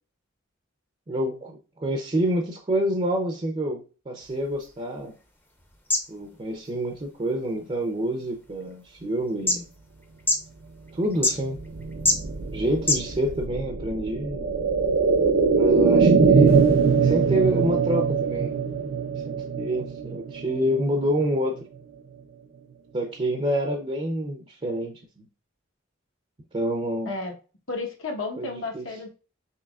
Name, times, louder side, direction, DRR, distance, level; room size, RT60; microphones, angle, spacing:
voice 1, 1.1-5.1 6.1-9.7 10.9-11.6 12.5-14.5 15.5-16.7 17.0-18.6 19.3-21.6 22.9-25.2 26.5-27.1 28.4-28.8, right 1 dB, 30° right, 3 dB, 0.6 m, -27 dB
sound 1, 4.2-13.5, left 2 dB, 10° left, 0.6 m, -32 dB
sound 2, 11.5-21.3 21.6-21.7, right 5 dB, 75° right, 0.6 m, -22 dB
voice 2, 27.7-29.1, left 3 dB, 70° left, 1 dB, 1.1 m, -32 dB
5.6 x 3.0 x 2.3 m, 0.35 s
head